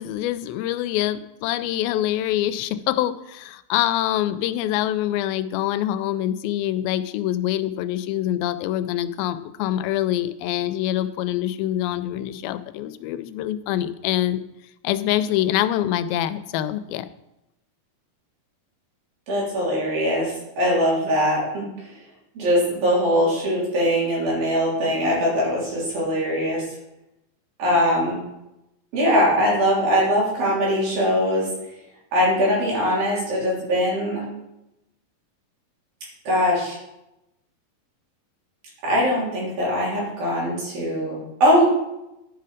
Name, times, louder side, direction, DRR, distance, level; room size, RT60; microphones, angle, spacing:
voice 1, 0.0-14.4 14.8-17.1, left 12 dB, 85° left, 11 dB, 2.4 m, -25 dB
voice 2, 19.3-21.9 22.4-26.6 27.6-28.2 28.9-31.5 32.1-34.2 36.3-36.8 38.8-41.6, equal, 75° right, -5 dB, 5.1 m, -21 dB
11.0 x 5.7 x 5.0 m, 0.90 s
omnidirectional pair, 4.2 m